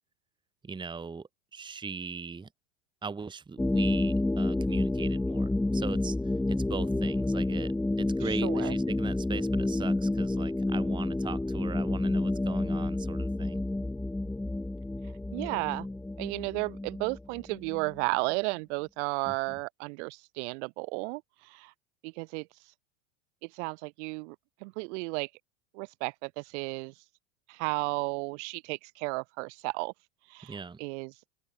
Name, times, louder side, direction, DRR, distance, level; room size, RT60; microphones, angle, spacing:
voice 1, 0.6-2.5 3.0-13.6 19.2-19.6 30.4-30.8, right 5 dB, 10° right, 1.3 m, -40 dB
sound 1, 3.6-18.0, left 2 dB, 5° left, 0.7 m, -29 dB
voice 2, 8.2-8.7 15.3-15.9 16.2-21.7 22.0-22.5 23.4-24.4 24.6-25.3 25.7-26.9 27.5-29.9 30.3-31.1, right 30 dB, 60° right, 2.2 m, -33 dB
open air
hypercardioid pair, 100°, 40 cm